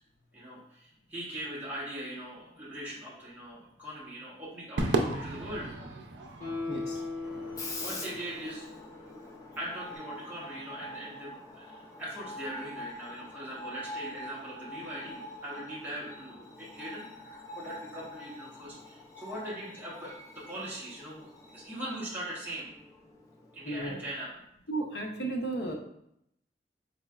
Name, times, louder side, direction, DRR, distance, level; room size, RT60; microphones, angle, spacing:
voice 1, 0.3-5.7 6.9-7.0 7.8-8.6 9.6-22.7 23.5-24.4, right 1 dB, 10° right, -7 dB, 0.8 m, -41 dB
Crowd / Fireworks, 4.8-9.3, right 2 dB, 90° right, 0.4 m, -35 dB
Guitar, 6.4-9.7 10.0-10.1, left 3 dB, 40° left, 1.3 m, -39 dB
voice 2, 6.7-7.0 23.6-24.0 24.7-25.7, right 2 dB, 75° left, 3 dB, 0.6 m, -34 dB
Screech, 7.2-23.8, left 1 dB, 20° left, 0.4 m, -45 dB
4.1 x 3.1 x 2.3 m, 0.76 s
head